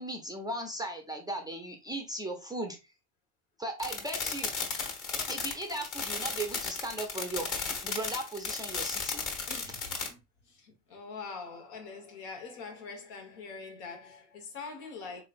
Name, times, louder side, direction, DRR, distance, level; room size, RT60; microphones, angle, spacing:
voice 1, 0.0-2.8 3.6-4.5 5.3-7.5 7.8-9.3, right 1 dB, 10° right, 0.3 m, -37 dB
sound 1, 3.8-10.1, left 5 dB, 40° left, 1.3 m, -35 dB
voice 2, 9.4-10.2 10.4-15.2, left 4 dB, 85° left, 1.4 m, -44 dB
3.7 x 3.2 x 2.4 m
supercardioid pair, 110°, 47 cm